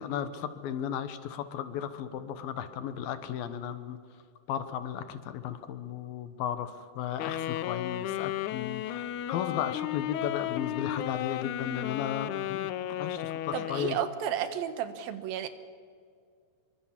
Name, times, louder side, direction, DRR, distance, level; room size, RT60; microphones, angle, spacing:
voice 1, 0.0-4.0 4.5-14.0, left 9 dB, 75° left, 11 dB, 2.9 m, -35 dB
Wind instrument woodwind instrument, 7.2-14.1, left 12 dB, 90° left, 1.7 m, -34 dB
voice 2, 13.5-15.5, right 10 dB, 75° right, 10 dB, 2.9 m, -32 dB
26.0 x 24.0 x 7.3 m, 2.2 s
omnidirectional pair, 4.5 m